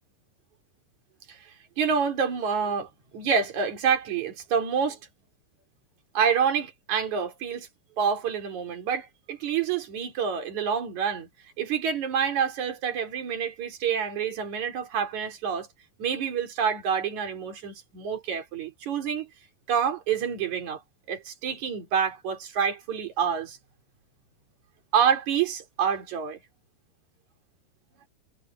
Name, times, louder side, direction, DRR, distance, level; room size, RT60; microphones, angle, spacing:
voice 1, 1.8-5.0 6.1-7.7 8.0-11.3 11.6-15.7 16.0-19.3 19.7-20.8 21.1-23.6 24.9-26.4, right 7 dB, 40° right, 4.6 m, -27 dB
omnidirectional pair, 5.4 m